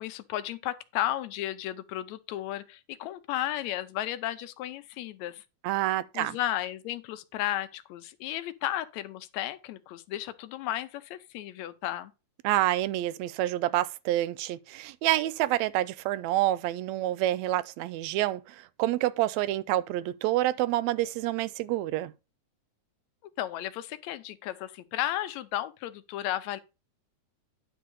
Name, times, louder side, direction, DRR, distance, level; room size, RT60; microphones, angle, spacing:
voice 1, 0.0-5.4 6.1-12.1 23.4-26.6, left 13 dB, 75° left, 1.9 m, -34 dB
voice 2, 5.6-6.4 12.4-22.1, right 15 dB, 80° right, 1.8 m, -28 dB
10.5 x 3.5 x 6.3 m
omnidirectional pair, 3.4 m